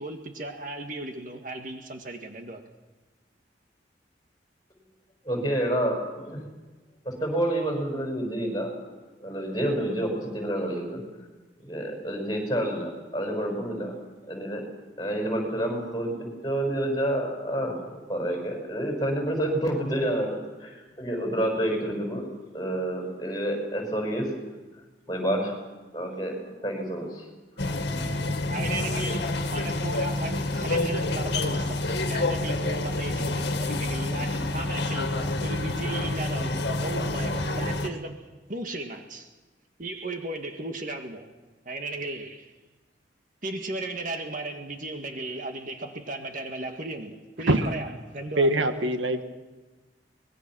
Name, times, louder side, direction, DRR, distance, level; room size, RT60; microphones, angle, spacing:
voice 1, 0.0-2.6 28.5-31.8 32.1-39.3 39.8-41.3 41.6-42.5 43.4-48.7, right 2 dB, 45° right, 1.8 m, -36 dB
voice 2, 5.2-6.0 6.2-6.4 7.0-8.7 9.2-11.0 11.6-13.9 14.3-14.6 15.0-22.2 22.5-24.3 25.1-25.5 25.9-27.2, right 1 dB, 20° left, 6.0 m, -29 dB
sound 1, 27.6-37.9, left 2 dB, 60° left, 2.0 m, -28 dB
voice 3, 48.4-49.2, right 1 dB, 80° right, 1.7 m, -23 dB
24.5 x 21.0 x 6.3 m
head